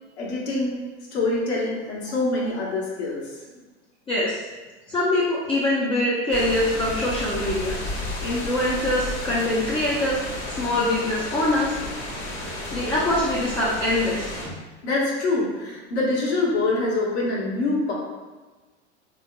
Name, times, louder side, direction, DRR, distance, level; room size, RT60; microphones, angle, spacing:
voice 1, 0.2-3.4 14.8-17.9, left 2 dB, 65° left, -4 dB, 1.2 m, -25 dB
voice 2, 4.1-4.4 4.9-7.7 8.2-10.2 10.5-11.7 12.7-14.3, left 1 dB, 15° left, -8 dB, 0.6 m, -23 dB
sound 1, 6.3-14.5, left 1 dB, 45° left, 1.2 m, -32 dB
3.5 x 2.9 x 2.2 m, 1.2 s
hypercardioid pair, 95°, 35 cm